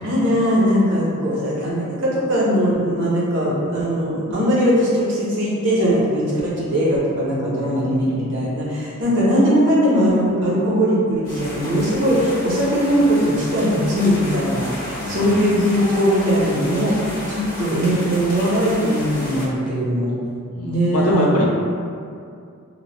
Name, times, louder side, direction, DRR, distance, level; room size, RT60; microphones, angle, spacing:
voice 1, 0.0-20.1 20.6-21.3, equal, 55° right, -7 dB, 0.7 m, -20 dB
voice 2, 7.8-8.1 15.0-15.6 20.5-21.5, equal, 85° left, -2 dB, 0.5 m, -23 dB
sound 1, 11.2-19.4, equal, 40° left, 0.7 m, -32 dB
3.0 x 2.1 x 2.6 m, 2.4 s
head